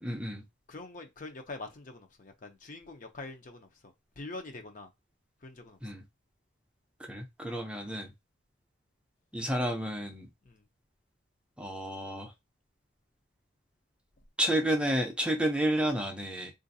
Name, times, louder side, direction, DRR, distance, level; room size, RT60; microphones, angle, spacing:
voice 1, 0.0-0.4 5.8-6.0 7.1-8.1 9.3-10.3 11.6-12.3 14.4-16.5, right 1 dB, 5° right, 0.5 m, -30 dB
voice 2, 0.7-4.9 5.4-5.8 10.5-10.6, left 2 dB, 40° left, 0.6 m, -44 dB
3.8 x 2.5 x 2.6 m
head